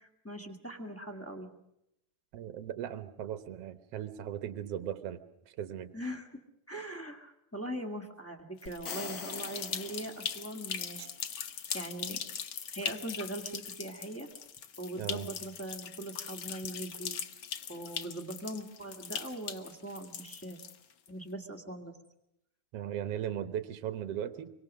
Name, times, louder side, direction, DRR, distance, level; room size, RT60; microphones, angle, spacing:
voice 1, 0.0-1.5 5.9-6.3 6.7-11.1 11.7-12.2 12.7-14.3 14.8-17.2 17.7-20.6 21.1-21.9, right 1 dB, 5° left, 0 dB, 1.1 m, -41 dB
voice 2, 2.3-5.2 5.5-5.9 15.0-15.3 22.7-24.5, right 10 dB, 60° right, 11 dB, 1.8 m, -37 dB
sound 1, 8.6-21.1, left 8 dB, 70° left, 1.1 m, -40 dB
sound 2, 8.7-10.7, left 6 dB, 85° left, 0.8 m, -43 dB
26.5 x 24.0 x 6.3 m, 0.83 s
omnidirectional pair, 3.7 m